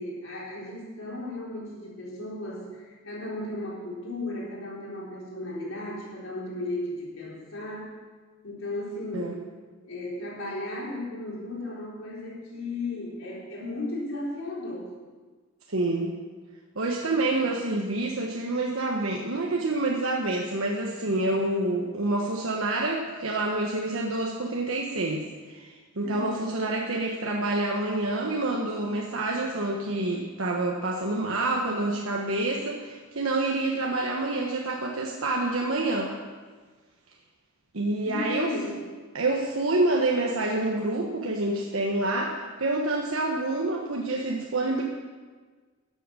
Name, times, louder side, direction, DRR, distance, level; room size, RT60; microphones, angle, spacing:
voice 1, 0.0-8.0 8.4-9.4 9.8-14.9 26.0-26.5 38.1-38.8, left 2 dB, 75° left, -4 dB, 3.9 m, -35 dB
voice 2, 15.7-16.2 16.7-36.1 37.7-38.8 39.1-44.8, right 2 dB, 90° right, -1 dB, 1.2 m, -27 dB
13.5 x 7.9 x 6.3 m, 1.4 s
head